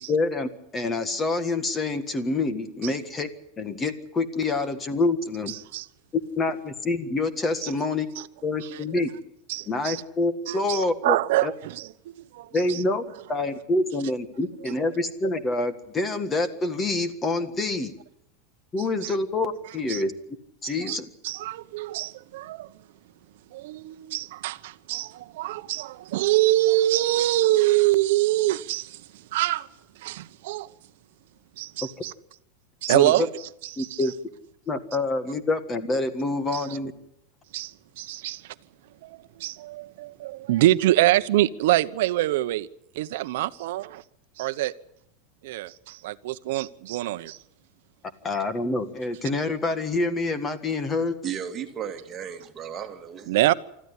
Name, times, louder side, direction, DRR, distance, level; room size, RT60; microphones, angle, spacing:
voice 1, 0.1-3.3 3.6-5.5 6.4-8.1 8.4-9.1 9.7-11.2 11.4-11.5 12.5-13.0 13.3-17.9 18.7-20.1 20.6-21.1 32.9-33.3 33.8-34.1 34.7-36.9 48.2-51.2, left 2 dB, 15° left, 1.7 m, -26 dB
voice 2, 9.5-10.0 10.5-12.8 19.0-19.1 19.9-20.0 20.6-21.0 21.2-22.7 23.5-29.0 29.3-29.7 30.0-30.7 31.6-32.1 32.8-33.3 33.7-34.0 36.5-36.7 37.5-38.5 39.0-42.7 42.9-44.0 44.4-44.7 45.4-47.4 53.3-53.5, right 16 dB, 70° right, 0.9 m, -25 dB
voice 3, 51.2-53.4, right 8 dB, 20° right, 2.2 m, -35 dB
25.0 x 14.0 x 9.8 m
supercardioid pair, 155°, 0 cm